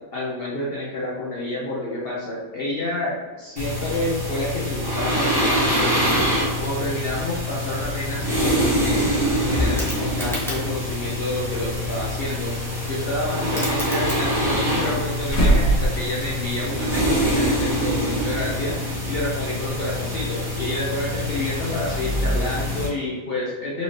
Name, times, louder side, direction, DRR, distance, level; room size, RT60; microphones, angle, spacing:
voice 1, 0.1-6.3 6.6-9.1 9.4-12.5 12.9-18.8 19.1-23.8, left 1 dB, 55° left, -5 dB, 0.7 m, -29 dB
sound 1, 3.6-22.9, equal, 20° right, 0.9 m, -25 dB
sound 2, 9.1-10.9 13.0-13.1 13.3-14.7 15.0-16.1 17.5-17.7, left 1 dB, ahead, 0.6 m, -32 dB
sound 3, 12.6-13.5 14.4-16.7 17.0-17.1 18.7-18.8, right 1 dB, 75° left, 1.5 m, -24 dB
4.1 x 2.6 x 3.1 m, 1.3 s
omnidirectional pair, 1.5 m